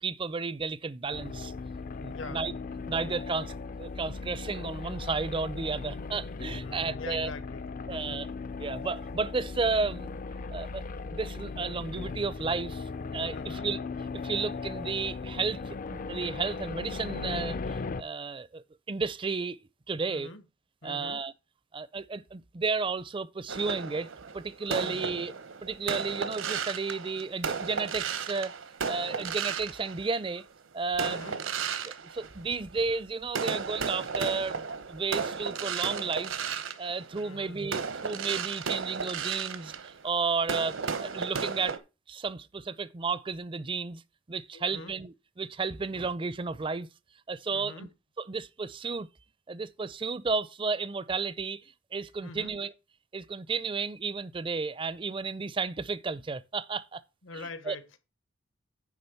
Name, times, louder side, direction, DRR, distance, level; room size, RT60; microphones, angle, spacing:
voice 1, 0.0-1.5 2.0-2.5 2.9-3.5 3.8-7.3 7.9-8.3 8.6-10.2 10.5-10.8 11.1-13.8 14.2-15.6 15.9-19.6 19.9-20.3 20.8-21.3 21.7-24.1 24.3-25.3 25.6-28.5 28.8-30.4 30.7-31.2 31.9-36.5 36.8-41.8 42.1-44.0 44.3-46.9 47.3-47.9 48.2-49.1 49.5-51.6 51.9-52.7 53.1-57.0 57.7-57.8, right 4 dB, 25° right, 0.4 m, -33 dB
sound 1, 1.1-18.0, left 4 dB, 40° left, 0.4 m, -38 dB
voice 2, 2.1-2.9 3.4-3.5 6.6-7.6 7.9-8.3 13.3-13.7 20.1-20.4 20.8-21.2 24.8-25.2 31.0-31.4 37.2-37.6 44.5-44.9 47.5-47.9 52.2-52.6 57.2-58.0, left 3 dB, 75° left, 1.2 m, -44 dB
sound 2, 23.5-30.4 30.9-32.9 33.3-41.8, right 6 dB, 80° right, 1.0 m, -34 dB
9.8 x 3.8 x 6.8 m
head